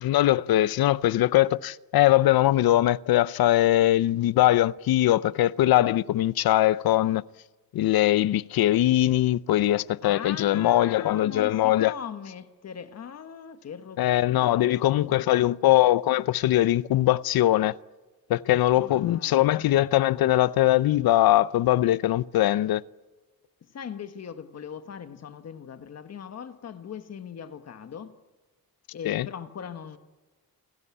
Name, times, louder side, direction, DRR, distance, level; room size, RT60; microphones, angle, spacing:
voice 1, 0.0-7.2 7.7-11.9 14.0-17.7 18.3-22.8 29.0-29.3, left 14 dB, 90° left, 0.7 m, -21 dB
voice 2, 10.0-14.0 14.3-15.5 18.7-19.5 23.7-28.1 28.9-30.0, left 7 dB, 45° left, 1.4 m, -40 dB
28.0 x 18.0 x 8.5 m
wide cardioid pair, 180°, 35 cm